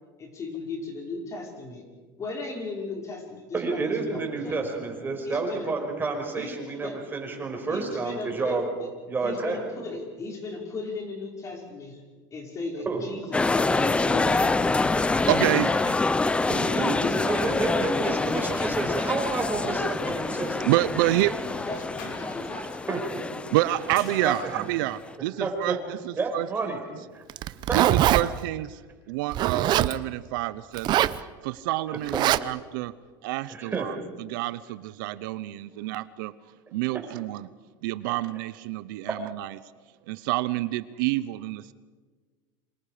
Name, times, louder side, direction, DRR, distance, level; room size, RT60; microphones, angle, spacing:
voice 1, 0.2-1.8 2.2-4.5 5.3-5.7 6.4-7.0 7.7-8.9 9.2-12.0 12.3-15.8 16.5-17.8 21.5-23.0, left 3 dB, 30° left, 1 dB, 5.5 m, -37 dB
voice 2, 3.5-8.6 9.1-9.6 12.9-13.0 16.5-17.0 17.3-20.7 22.9-23.0 24.2-24.6 25.4-25.8 26.2-26.8 27.1-27.2 27.7-28.2 32.1-32.2 33.5-33.9 36.9-37.0 38.1-38.2, right 4 dB, 20° right, 2 dB, 5.3 m, -30 dB
sound 1, 13.3-25.1, left 3 dB, 10° left, 0.7 m, -26 dB
voice 3, 15.2-15.9 20.6-21.4 23.5-26.8 27.6-28.8 29.1-30.9 31.4-32.9 33.2-36.3 36.7-37.5 37.8-39.6 40.1-41.7, right 16 dB, 75° right, 16 dB, 0.8 m, -28 dB
sound 2, 21.7-25.8, left 4 dB, 75° left, 6.2 m, -46 dB
Zipper (clothing), 27.3-28.2 29.3-29.9 30.7-31.2 32.1-32.4, right 13 dB, 40° right, 0.8 m, -22 dB
28.5 x 26.0 x 5.1 m, 1.4 s
supercardioid pair, 130°, 11 cm